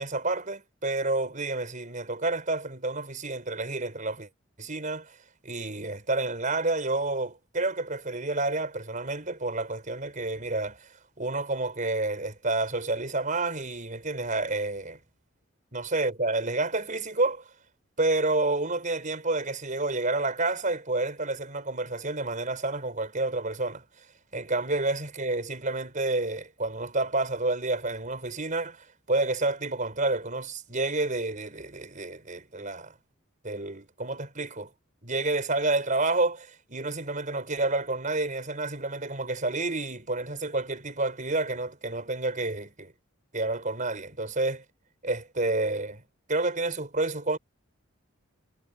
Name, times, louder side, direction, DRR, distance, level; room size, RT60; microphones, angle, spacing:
voice 1, 0.0-4.3 4.6-5.2 5.4-10.9 11.2-15.0 15.7-17.4 18.0-23.8 24.3-32.9 33.4-34.7 35.0-42.9 43.3-44.6 45.0-46.0 46.3-47.4, right 2 dB, 40° right, 5.5 m, -29 dB
head